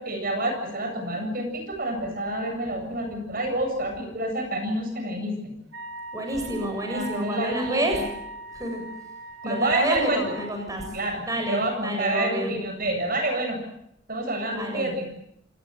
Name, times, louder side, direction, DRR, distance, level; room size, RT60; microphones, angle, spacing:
voice 1, 0.0-5.5 6.9-7.9 9.4-10.2 10.9-13.6 14.1-15.1, right 1 dB, 50° right, 5 dB, 8.0 m, -28 dB
Wind instrument woodwind instrument, 5.7-10.5, right 1 dB, 85° right, 4.1 m, -40 dB
voice 2, 6.1-8.0 8.5-8.8 9.4-10.8 11.2-12.5 14.5-14.9, right 1 dB, 20° right, 3 dB, 7.2 m, -29 dB
28.0 x 20.5 x 7.9 m, 0.76 s
head